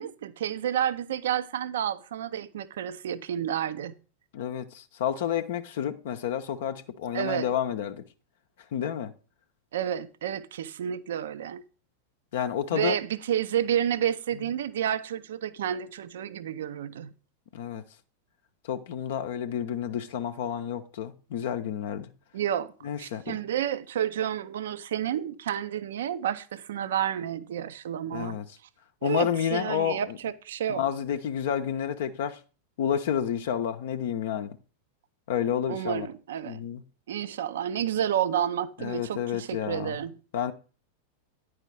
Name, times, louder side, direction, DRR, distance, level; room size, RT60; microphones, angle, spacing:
voice 1, 0.0-3.9 7.1-7.5 9.7-11.6 12.7-17.1 22.3-22.7 23.0-28.4 29.0-30.8 35.7-36.6 37.1-40.1, right 10 dB, 60° right, 0.4 m, -30 dB
voice 2, 4.3-8.0 8.7-9.1 12.3-13.0 17.5-17.8 18.6-22.1 22.8-23.4 28.1-28.6 29.0-30.2 30.7-32.4 32.8-34.6 35.3-36.1 36.5-36.8 38.8-40.0 40.3-40.5, left 9 dB, 55° left, 0.5 m, -30 dB
9.7 x 4.8 x 4.5 m
figure-of-eight pair, 90°, 0 cm